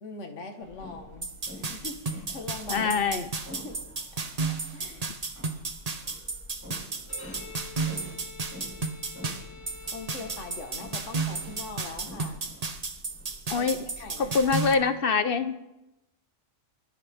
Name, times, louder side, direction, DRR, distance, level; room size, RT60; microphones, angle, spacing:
voice 1, 0.0-3.0 3.5-3.8 4.1-4.2 4.5-5.0 9.9-12.4 13.6-13.7 14.0-14.6, left 3 dB, 70° left, 3 dB, 1.9 m, -42 dB
sound 1, 0.6-14.8, equal, 10° right, 5.1 m, -47 dB
sound 2, 1.2-14.7, right 4 dB, 35° right, 1.0 m, -33 dB
voice 2, 2.7-3.3 13.5-13.8 14.2-15.7, left 5 dB, 50° left, 10 dB, 1.1 m, -25 dB
Bowed string instrument, 7.0-12.3, left 5 dB, 90° left, 2.1 m, -49 dB
25.0 x 14.0 x 3.6 m, 0.95 s
omnidirectional pair, 1.3 m